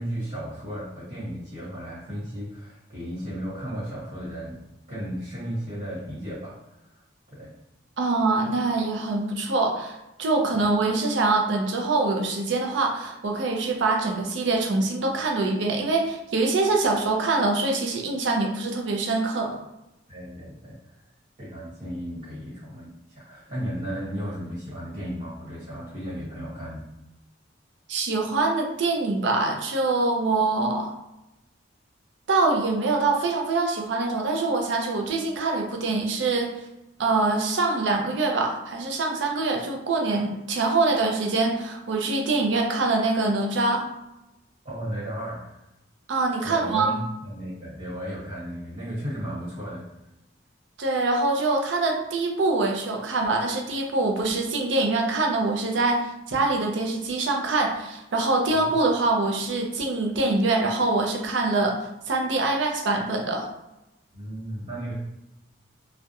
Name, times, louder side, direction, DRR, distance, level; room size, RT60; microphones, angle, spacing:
voice 1, 0.0-4.6 4.9-6.6 6.8-7.0 7.3-7.5 20.1-21.0 21.4-26.9 44.6-45.6 46.4-49.9 58.6-58.7 64.1-64.9, equal, 45° right, -11 dB, 1.2 m, -34 dB
voice 2, 8.0-19.6 27.9-30.9 32.3-36.5 37.0-43.8 46.1-46.9 50.8-61.8 62.1-63.5, right 3 dB, 70° right, 2 dB, 0.4 m, -24 dB
2.3 x 2.0 x 2.8 m, 0.92 s
head